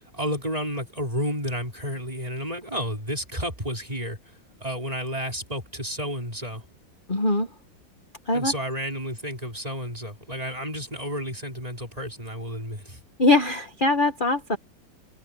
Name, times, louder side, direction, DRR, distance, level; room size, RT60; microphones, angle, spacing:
voice 1, 0.1-4.2 4.6-6.6 8.3-13.0, equal, 20° right, 5.7 m, -31 dB
voice 2, 7.1-7.5 8.3-8.5 13.2-14.6, left 2 dB, 25° left, 1.7 m, -22 dB
omnidirectional pair, 2.1 m